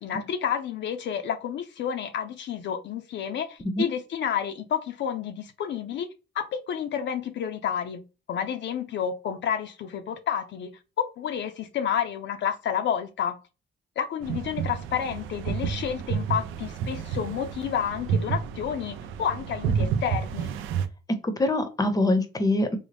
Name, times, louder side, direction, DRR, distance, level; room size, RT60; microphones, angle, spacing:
voice 1, 0.0-6.1 6.3-8.0 8.3-13.4 14.0-20.5, left 8 dB, 65° left, 0.5 m, -30 dB
sound 1, 14.2-20.9, right 7 dB, 85° right, 0.5 m, -30 dB
voice 2, 21.2-22.8, left 1 dB, 20° left, 0.7 m, -24 dB
3.8 x 2.0 x 3.3 m
cardioid pair, 90°, 20 cm